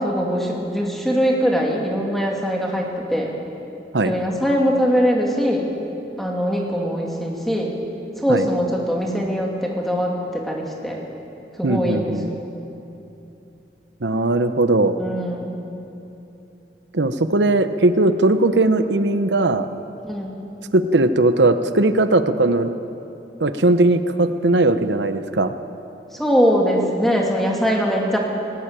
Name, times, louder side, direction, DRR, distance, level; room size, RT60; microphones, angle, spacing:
voice 1, 0.0-3.3 4.0-5.7 6.2-7.8 8.2-11.0 11.6-12.4 15.0-15.5 20.0-20.4 26.1-28.2, equal, ahead, -1 dB, 2.7 m, -22 dB
voice 2, 11.6-12.3 14.0-14.9 16.9-19.7 20.7-22.7 23.4-25.5, right 2 dB, 90° right, 10 dB, 0.9 m, -18 dB
18.0 x 18.0 x 9.0 m, 2.9 s
head